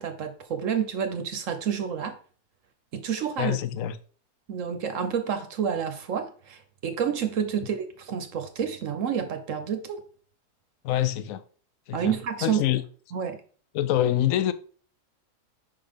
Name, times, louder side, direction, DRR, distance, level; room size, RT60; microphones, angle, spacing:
voice 1, 0.0-2.2 2.9-3.6 4.5-10.0 11.9-12.6 13.1-13.4, right 8 dB, 60° right, 1.0 m, -29 dB
voice 2, 3.4-4.0 10.8-11.4 11.9-12.1 12.4-12.8 13.7-14.5, left 12 dB, 70° left, 0.8 m, -25 dB
5.6 x 3.9 x 5.0 m
omnidirectional pair, 1.7 m